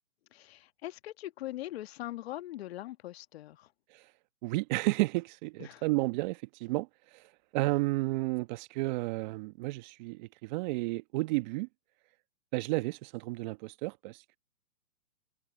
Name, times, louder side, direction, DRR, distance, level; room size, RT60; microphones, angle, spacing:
voice 1, 0.3-3.7 5.6-5.8, left 15 dB, 45° left, 1.5 m, -41 dB
voice 2, 4.4-6.9 7.5-11.7 12.5-14.4, right 22 dB, 35° right, 1.4 m, -32 dB
hypercardioid pair, 135°, 42 cm